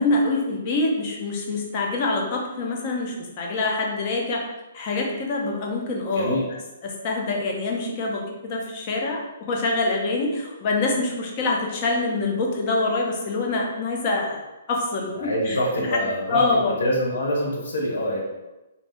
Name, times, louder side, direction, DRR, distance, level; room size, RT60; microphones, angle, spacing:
voice 1, 0.0-4.4 4.7-6.3 6.8-14.4 14.7-16.0 16.3-16.8, left 2 dB, 25° left, 0 dB, 0.4 m, -25 dB
voice 2, 6.1-6.4 15.2-18.2, equal, 75° left, -2 dB, 0.9 m, -25 dB
2.4 x 2.1 x 3.4 m, 1.0 s
hypercardioid pair, 180°, 0 cm